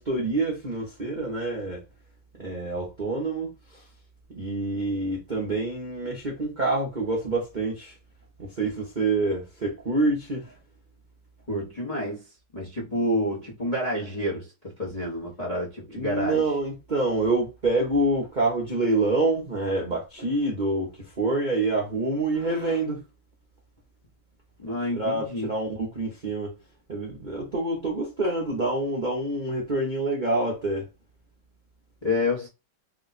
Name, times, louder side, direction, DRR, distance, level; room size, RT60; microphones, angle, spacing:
voice 1, 0.0-1.8 2.4-3.8 4.3-7.9 8.4-10.5 15.9-20.9 21.2-23.0 25.0-26.5 26.9-30.9, right 2 dB, 40° right, 0.7 m, -27 dB
voice 2, 11.5-12.2 12.5-14.5 14.8-16.4 24.6-25.5 32.0-32.5, left 1 dB, 30° left, 0.8 m, -28 dB
3.5 x 2.3 x 4.0 m
omnidirectional pair, 2.2 m